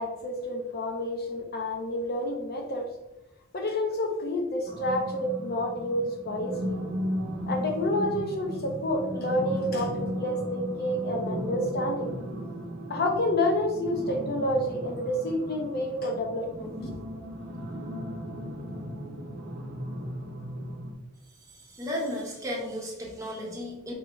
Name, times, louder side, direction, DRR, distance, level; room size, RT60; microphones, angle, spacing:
voice 1, 0.0-2.9 3.5-6.8 7.5-12.1 12.9-17.0, left 1 dB, 50° left, 2 dB, 0.6 m, -29 dB
sound 1, 4.7-20.9, equal, 55° right, 0.7 m, -36 dB
voice 2, 21.5-23.9, equal, 15° right, -3 dB, 1.0 m, -34 dB
4.7 x 2.9 x 3.1 m, 0.92 s
head